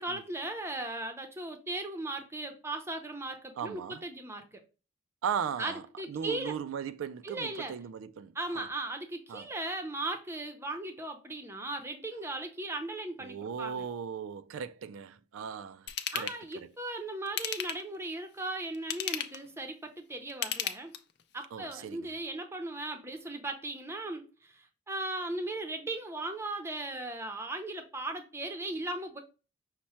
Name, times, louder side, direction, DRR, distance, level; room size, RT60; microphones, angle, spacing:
voice 1, 0.0-4.6 5.6-6.6 7.2-7.7 8.3-13.9 16.1-20.9 21.3-29.2, right 2 dB, 15° right, 0.6 m, -37 dB
voice 2, 3.6-4.0 5.2-8.7 9.3-9.5 13.2-16.7 21.5-22.2, right 7 dB, 85° right, 0.3 m, -38 dB
Ratchet pawl / Tools, 15.9-16.4 17.3-18.0 18.7-19.5 20.3-21.2 21.7-21.8, left 10 dB, 55° left, 0.4 m, -34 dB
5.8 x 2.1 x 4.2 m
head